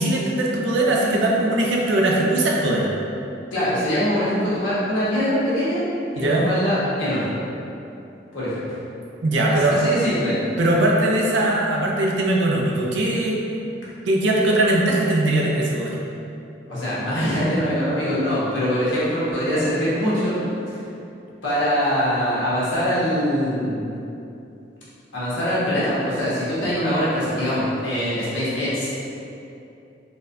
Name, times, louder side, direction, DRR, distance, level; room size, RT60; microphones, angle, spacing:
voice 1, 0.0-2.9 6.2-6.5 9.2-9.8 10.6-13.4 14.1-16.0, right 1 dB, 70° right, -2 dB, 0.5 m, -20 dB
voice 2, 3.5-5.8 6.1-7.3 8.3-8.6 9.5-10.4 16.7-20.4 21.4-23.9 25.1-28.9, equal, 80° left, -10 dB, 1.1 m, -23 dB
4.1 x 2.2 x 2.6 m, 2.7 s
head